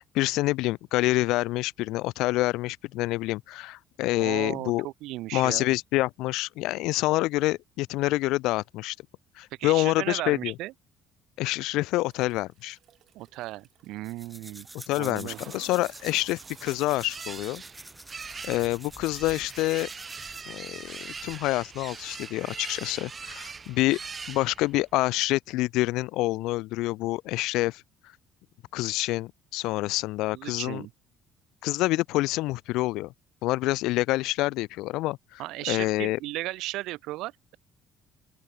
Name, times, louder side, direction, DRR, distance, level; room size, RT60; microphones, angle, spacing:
voice 1, 0.0-4.9 5.3-9.0 9.4-10.5 11.4-12.8 14.9-17.6 18.4-19.9 20.5-24.0 24.3-27.8 28.7-30.8 31.6-33.1 33.4-35.4 35.7-36.2, left 19 dB, 80° left, 0.4 m, -27 dB
voice 2, 4.1-5.7 9.6-10.7 13.1-14.7 15.0-15.4 30.3-30.9 35.4-37.6, right 18 dB, 75° right, 1.3 m, -35 dB
Toilet flush, 12.1-21.0, right 10 dB, 45° right, 3.0 m, -56 dB
sound 1, 14.0-20.5, right 1 dB, 5° right, 3.5 m, -47 dB
sound 2, 16.0-24.9, right 5 dB, 20° right, 2.1 m, -42 dB
open air
cardioid pair, 175°, 0 cm